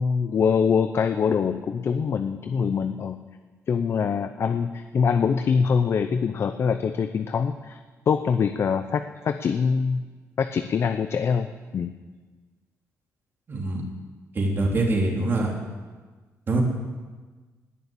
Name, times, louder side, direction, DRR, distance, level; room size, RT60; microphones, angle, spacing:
voice 1, 0.0-3.2 3.7-7.8 8.1-10.0 10.4-11.5 11.7-11.9, left 6 dB, 50° left, 9 dB, 0.6 m, -24 dB
voice 2, 13.5-13.8 14.4-15.5 16.5-16.6, right 2 dB, 40° right, -1 dB, 3.4 m, -24 dB
19.0 x 7.0 x 8.6 m, 1.3 s
cardioid pair, 120°, 6 cm